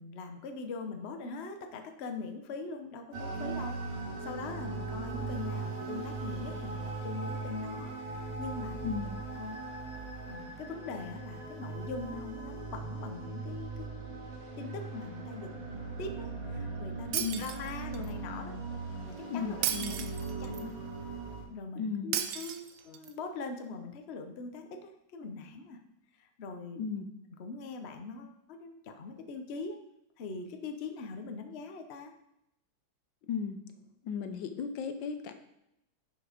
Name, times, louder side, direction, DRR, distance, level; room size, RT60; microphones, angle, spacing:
voice 1, 0.0-9.1 9.3-9.6 10.2-14.1 14.6-18.5 19.1-20.0 20.4-20.7 21.5-25.8 26.2-26.8 27.4-29.8 30.2-32.1, left 4 dB, 50° left, 6 dB, 0.8 m, -42 dB
sound 1, 3.1-21.4, right 3 dB, 60° right, 2.6 m, -39 dB
voice 2, 8.8-9.2 17.2-17.4 19.3-20.1 21.8-22.1 26.8-27.1 33.3-33.6 34.0-35.3, left 6 dB, 75° left, 9 dB, 1.4 m, -35 dB
Shatter, 17.1-18.1 19.6-20.6 22.1-23.1, right 10 dB, 85° right, 1.5 m, -35 dB
10.0 x 5.3 x 5.0 m, 0.84 s
omnidirectional pair, 2.1 m